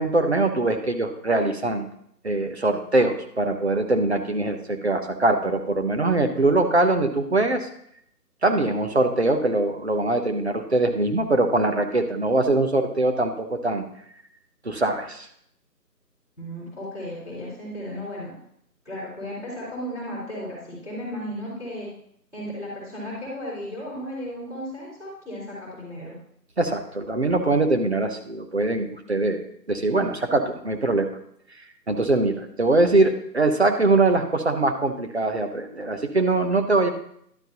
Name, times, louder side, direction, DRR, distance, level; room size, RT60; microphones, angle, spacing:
voice 1, 0.0-1.9 2.2-7.7 8.4-13.8 14.6-15.3 26.6-29.4 29.7-31.1 31.9-36.9, right 2 dB, 40° right, 5 dB, 1.0 m, -22 dB
voice 2, 16.4-18.3 18.8-21.9 22.3-26.1, equal, 5° right, -14 dB, 3.8 m, -35 dB
11.5 x 8.9 x 2.9 m, 0.69 s
figure-of-eight pair, 160°, 49 cm